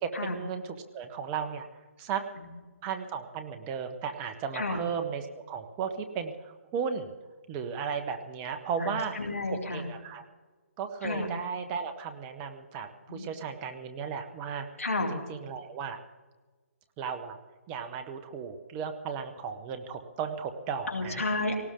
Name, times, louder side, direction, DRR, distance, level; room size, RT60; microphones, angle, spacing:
voice 1, 0.0-1.7 2.0-2.2 2.8-7.1 7.5-9.1 9.5-10.2 10.8-14.7 15.1-16.0 17.0-17.4 17.7-21.2, right 6 dB, 20° right, 7 dB, 1.2 m, -35 dB
voice 2, 8.8-9.9 11.0-11.3 13.1-13.3 14.8-15.1 20.9-21.5, left 2 dB, 90° left, 3 dB, 3.2 m, -31 dB
18.5 x 18.0 x 3.8 m, 1.3 s
hypercardioid pair, 150°, 7 cm